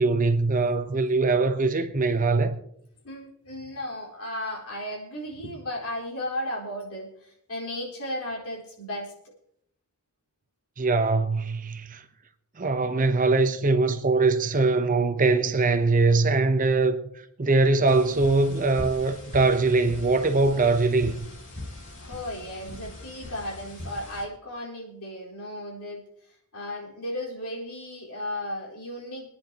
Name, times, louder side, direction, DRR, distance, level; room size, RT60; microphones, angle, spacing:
voice 1, 0.0-2.5 10.8-12.0 12.6-17.0 17.4-21.2, right 3 dB, 35° right, 0.9 m, -22 dB
voice 2, 3.0-9.1 22.0-29.3, left 1 dB, 90° left, 4.5 m, -35 dB
sound 1, 17.8-24.2, left 1 dB, 60° left, 6.3 m, -41 dB
25.0 x 10.0 x 3.0 m
head